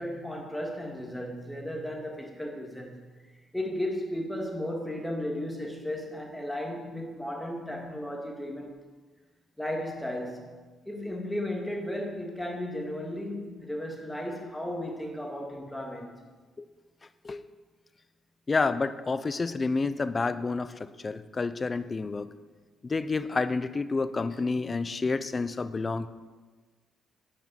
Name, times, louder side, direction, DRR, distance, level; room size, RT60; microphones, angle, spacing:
voice 1, 0.0-3.1 3.5-8.7 9.6-10.5 10.9-16.2, left 1 dB, 5° left, 0 dB, 2.4 m, -35 dB
voice 2, 18.5-22.3 22.8-26.1, left 4 dB, 30° left, 13 dB, 0.6 m, -29 dB
10.5 x 6.3 x 9.1 m, 1.4 s
cardioid pair, 90°, 0 cm